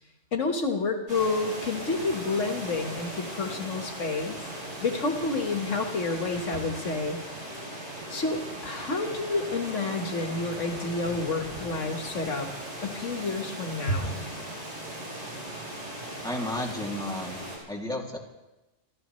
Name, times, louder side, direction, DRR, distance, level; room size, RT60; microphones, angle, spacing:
voice 1, 0.3-4.4 4.8-7.2 8.1-12.5 12.8-14.2, left 3 dB, 80° left, 4 dB, 1.8 m, -29 dB
sound 1, 1.1-17.6, right 1 dB, 85° right, 6.1 m, -38 dB
voice 2, 16.2-18.2, left 1 dB, 5° left, -1 dB, 2.5 m, -33 dB
27.5 x 13.5 x 3.2 m, 1.0 s
omnidirectional pair, 1.3 m